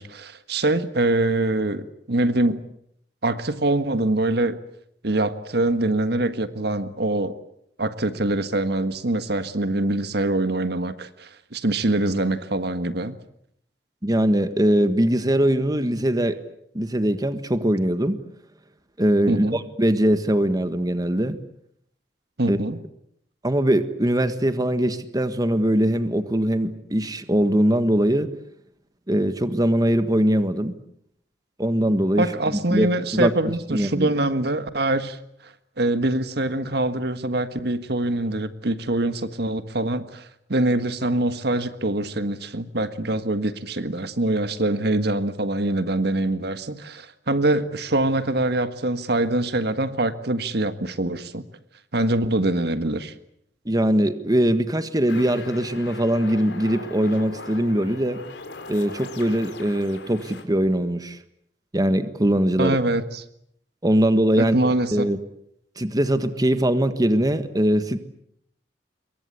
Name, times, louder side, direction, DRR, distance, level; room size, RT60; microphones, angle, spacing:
voice 1, 0.0-2.6 3.2-4.6 5.0-7.4 7.8-13.2 19.3-19.6 22.4-22.8 32.2-35.2 35.8-51.4 51.9-53.1 62.6-63.2 64.4-65.1, right 2 dB, 65° right, 11 dB, 1.6 m, -24 dB
voice 2, 14.0-16.4 16.7-18.2 19.0-21.4 22.5-22.6 23.4-28.3 29.1-30.7 31.6-32.3 32.7-34.1 53.6-58.2 58.7-61.2 61.7-62.8 63.8-65.2 65.8-68.0, right 1 dB, 20° right, 10 dB, 1.5 m, -21 dB
sound 1, 55.1-60.4, left 3 dB, 85° left, 4.2 m, -40 dB
26.0 x 23.0 x 8.4 m, 0.72 s
head